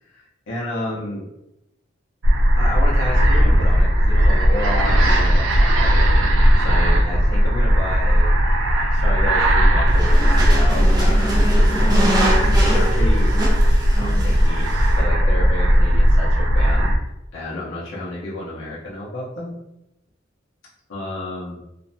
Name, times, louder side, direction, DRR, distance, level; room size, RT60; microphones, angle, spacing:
voice 1, 0.1-1.3 2.6-8.4 8.9-12.2 12.6-13.6 13.9-16.9 17.3-19.6 20.9-21.6, left 1 dB, 80° left, -6 dB, 0.6 m, -31 dB
sound 1, 2.2-17.0, equal, 80° right, 0.4 m, -16 dB
sound 2, 9.9-15.0, equal, 20° right, 0.5 m, -26 dB
2.5 x 2.1 x 2.6 m, 0.87 s
head